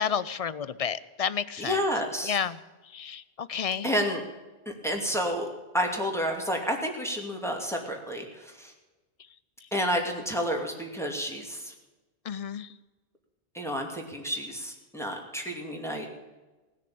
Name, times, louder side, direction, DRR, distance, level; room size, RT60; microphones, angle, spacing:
voice 1, 0.0-1.8 2.2-3.9 12.2-12.7, left 7 dB, 45° left, 17 dB, 0.5 m, -31 dB
voice 2, 1.6-2.4 3.8-4.2 4.8-5.5 5.7-8.7 9.7-11.7 13.5-16.1, equal, ahead, 1 dB, 2.4 m, -30 dB
19.0 x 6.8 x 8.5 m, 1.2 s
omnidirectional pair, 1.1 m